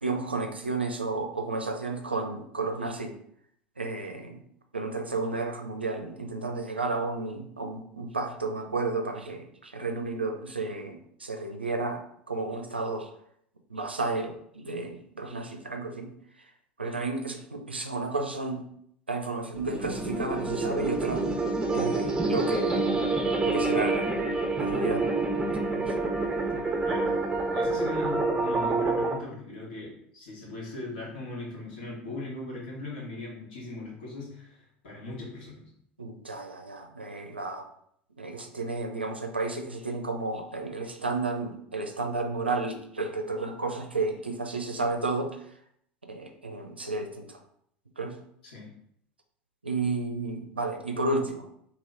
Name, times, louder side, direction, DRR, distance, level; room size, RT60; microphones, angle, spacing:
voice 1, 0.0-3.1 3.8-4.4 4.7-12.0 12.3-13.1 13.7-16.1 16.8-18.6 19.1-21.2 21.7-23.1 23.5-24.1 24.6-25.0 25.8-26.1 36.0-37.6 38.2-45.3 46.1-47.4 48.0-48.2 49.6-51.5, right 3 dB, 85° right, 5 dB, 0.5 m, -32 dB
sound 1, 19.5-29.1, right 3 dB, 15° right, 0.6 m, -27 dB
voice 2, 27.5-35.6 48.4-48.7, left 2 dB, 60° left, -4 dB, 1.5 m, -39 dB
3.1 x 2.9 x 3.8 m, 0.69 s
figure-of-eight pair, 70°, 6 cm